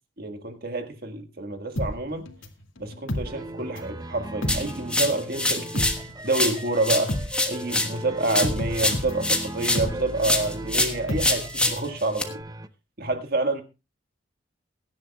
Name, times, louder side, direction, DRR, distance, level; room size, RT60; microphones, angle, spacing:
voice 1, 0.2-2.3 2.8-7.2 7.5-12.4 13.0-13.6, right 2 dB, 50° right, 1.6 m, -28 dB
sound 1, 1.8-4.0 4.3-12.0 12.3-12.4, left 1 dB, 85° left, 2.4 m, -32 dB
sound 2, 3.2-12.7, right 1 dB, 20° right, 0.6 m, -38 dB
sound 3, 4.5-6.0 6.3-9.9 10.2-12.2, left 2 dB, 5° left, 1.3 m, -26 dB
22.0 x 11.0 x 2.3 m
head